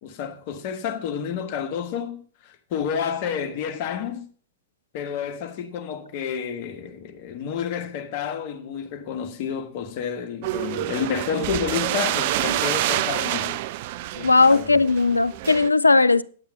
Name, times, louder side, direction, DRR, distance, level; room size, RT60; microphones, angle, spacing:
voice 1, 0.0-4.3 4.9-13.6 14.1-14.8, left 7 dB, 45° left, 1.5 m, -30 dB
sound 1, 10.4-15.7, right 15 dB, 50° right, 0.5 m, -27 dB
voice 2, 14.2-16.2, left 3 dB, 85° left, 0.5 m, -17 dB
10.0 x 7.9 x 5.5 m
figure-of-eight pair, 105°, 0 cm